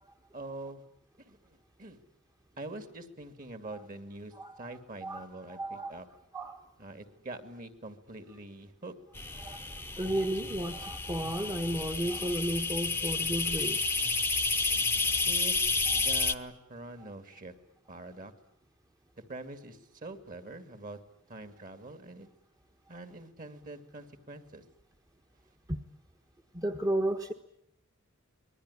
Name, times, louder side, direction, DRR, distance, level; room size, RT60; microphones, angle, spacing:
voice 1, 0.3-0.8 1.2-2.0 2.6-6.1 6.8-8.9 15.3-17.5 17.9-18.3 19.3-21.0 21.3-22.3 22.9-24.6, right 2 dB, 40° right, 9 dB, 2.6 m, -44 dB
voice 2, 5.5-5.9 6.3-6.6 9.4-9.6 10.0-13.8 25.7-25.8 26.5-27.3, right 1 dB, 20° right, 4 dB, 1.3 m, -32 dB
sound 1, 9.1-16.3, left 4 dB, 10° left, 1.0 m, -31 dB
26.5 x 21.5 x 9.9 m, 0.76 s
head